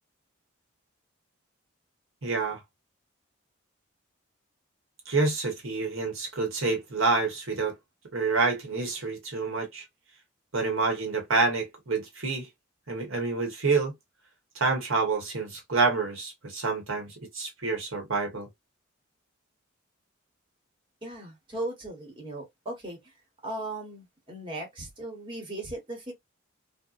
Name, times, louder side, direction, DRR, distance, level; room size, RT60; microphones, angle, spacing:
voice 1, 2.2-2.6 5.1-7.7 8.1-9.8 10.5-12.5 12.9-13.9 14.5-18.5, right 3 dB, 75° right, 1.1 m, -28 dB
voice 2, 21.0-23.1 23.4-26.1, right 1 dB, 25° right, 1.0 m, -37 dB
2.6 x 2.1 x 2.3 m
head